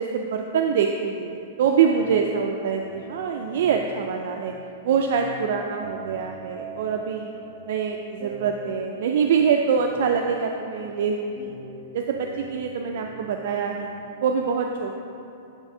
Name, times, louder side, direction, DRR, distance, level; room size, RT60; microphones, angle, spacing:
voice 1, 0.0-4.5 4.8-7.3 7.6-11.6 11.9-13.9 14.2-15.0, right 6 dB, 60° right, 2 dB, 0.3 m, -24 dB
sound 1, 1.7-14.0, right 2 dB, 10° right, 1.0 m, -43 dB
9.8 x 3.4 x 3.7 m, 2.7 s
supercardioid pair, 160°, 0 cm